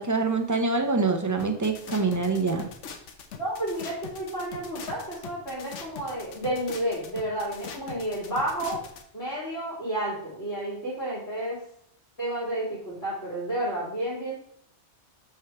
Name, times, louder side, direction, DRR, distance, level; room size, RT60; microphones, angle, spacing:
voice 1, 0.0-2.7, right 3 dB, 20° right, 6 dB, 0.5 m, -25 dB
sound 1, 1.4-9.0, left 6 dB, 85° left, 1.1 m, -41 dB
voice 2, 3.4-8.8 9.1-11.6 12.2-14.4, right 1 dB, 65° left, -8 dB, 2.8 m, -31 dB
7.9 x 3.7 x 4.5 m, 0.69 s
omnidirectional pair, 1.2 m